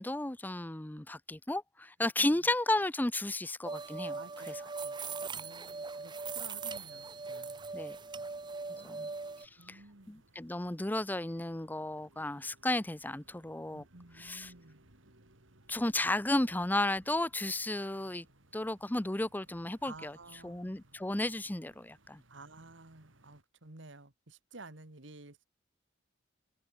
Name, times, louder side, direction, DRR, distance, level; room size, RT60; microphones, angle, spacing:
voice 1, 0.0-4.2 4.5-4.6 7.7-8.0 8.8-9.1 9.7-9.8 10.1-13.8 14.2-14.5 15.7-18.3 18.5-20.2 20.4-22.2, left 1 dB, 10° left, 0.6 m, -33 dB
voice 2, 2.2-2.5 4.2-5.0 5.3-7.6 8.8-9.2 9.6-10.2 13.7-14.8 19.8-20.8 22.3-25.4, right 2 dB, 70° right, 2.2 m, -53 dB
sound 1, 3.6-9.5, right 4 dB, 25° right, 0.8 m, -40 dB
sound 2, 4.9-23.4, right 1 dB, 90° right, 4.6 m, -65 dB
open air
head